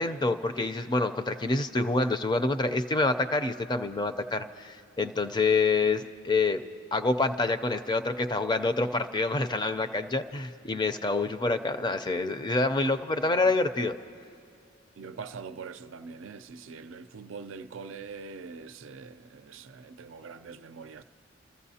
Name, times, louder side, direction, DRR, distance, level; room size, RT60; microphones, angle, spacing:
voice 1, 0.0-6.6 6.9-14.0, left 3 dB, 20° left, 0.5 m, -27 dB
voice 2, 15.0-21.0, right 5 dB, 75° right, 0.5 m, -43 dB
30.0 x 14.5 x 2.8 m
head